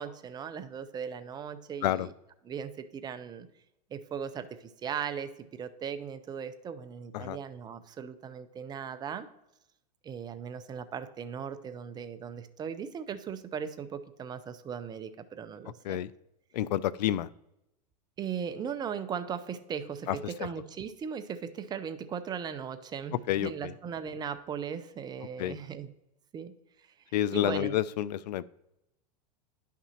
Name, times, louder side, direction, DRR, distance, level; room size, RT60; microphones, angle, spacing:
voice 1, 0.0-2.1 2.5-3.5 3.9-9.3 10.0-16.0 18.2-25.9 26.3-26.5 27.3-27.8, right 7 dB, 20° right, 11 dB, 0.5 m, -38 dB
voice 2, 16.5-17.3 20.1-20.5 23.3-23.7 25.4-25.6 27.1-28.4, left 12 dB, 80° left, 20 dB, 0.4 m, -29 dB
10.5 x 5.9 x 2.9 m, 0.86 s
supercardioid pair, 125°, 21 cm